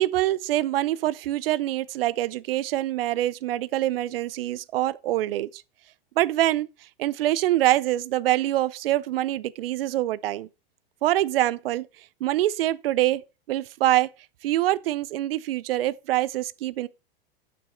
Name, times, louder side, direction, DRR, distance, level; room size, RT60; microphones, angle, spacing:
voice 1, 0.0-5.6 6.2-6.7 7.0-10.5 11.0-13.2 13.5-14.1 14.4-16.9, right 14 dB, 75° right, 0.6 m, -25 dB
7.0 x 6.1 x 4.5 m
hypercardioid pair, 110°, 29 cm